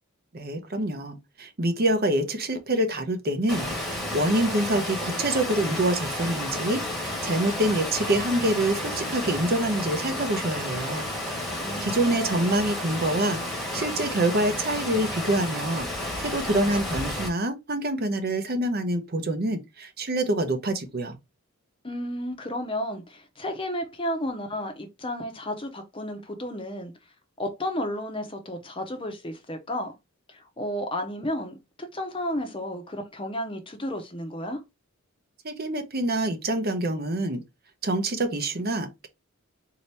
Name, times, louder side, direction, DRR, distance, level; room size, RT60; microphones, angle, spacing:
voice 1, 0.3-11.0 11.8-21.2 35.4-37.4 37.8-39.1, right 1 dB, 45° right, 0.7 m, -26 dB
Water, 3.5-17.3, left 1 dB, ahead, 1.1 m, -31 dB
voice 2, 11.6-12.6 21.8-26.9 27.4-29.9 30.3-34.6, left 1 dB, 25° left, 0.7 m, -32 dB
4.1 x 2.8 x 3.3 m
head